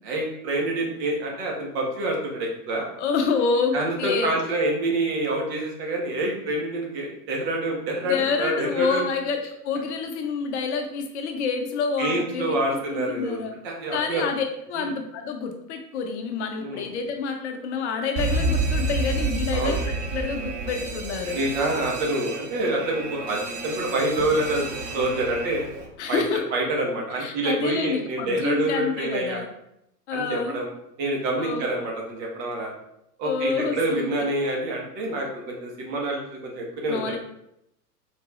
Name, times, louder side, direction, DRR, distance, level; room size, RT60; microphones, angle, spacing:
voice 1, 0.0-2.9 3.7-9.1 12.0-14.3 14.8-14.9 16.5-16.8 19.5-19.8 21.3-25.7 26.1-26.2 26.5-29.4 30.1-30.7 31.0-32.7 33.2-37.2, right 2 dB, 40° right, -1 dB, 1.5 m, -27 dB
voice 2, 3.0-4.4 8.0-13.5 13.9-19.8 20.1-21.4 26.0-26.4 27.1-29.5 30.1-30.6 31.4-31.6 33.2-34.1 36.9-37.2, left 5 dB, 45° left, 4 dB, 0.7 m, -28 dB
Alarm, 18.2-25.9, right 3 dB, 25° right, 0.6 m, -29 dB
Boom, 24.2-27.0, right 1 dB, 65° right, 1.3 m, -42 dB
4.5 x 4.0 x 2.4 m, 0.79 s
figure-of-eight pair, 100°, 48 cm